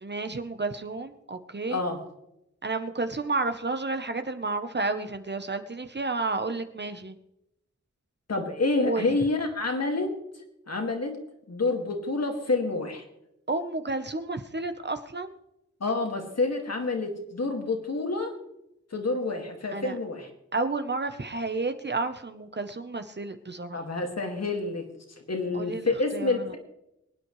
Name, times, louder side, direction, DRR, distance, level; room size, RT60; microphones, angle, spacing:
voice 1, 0.0-1.8 2.6-7.2 8.8-9.1 13.5-15.4 19.7-20.0 20.5-23.8 25.5-25.9 26.1-26.5, right 3 dB, 35° right, 8 dB, 1.0 m, -31 dB
voice 2, 1.7-2.0 8.3-10.2 10.7-11.2 11.5-13.0 15.8-18.4 18.9-20.3 23.7-24.9 25.3-26.6, left 3 dB, 60° left, 3 dB, 2.2 m, -28 dB
24.0 x 9.4 x 3.2 m, 0.84 s
wide cardioid pair, 85°, 29 cm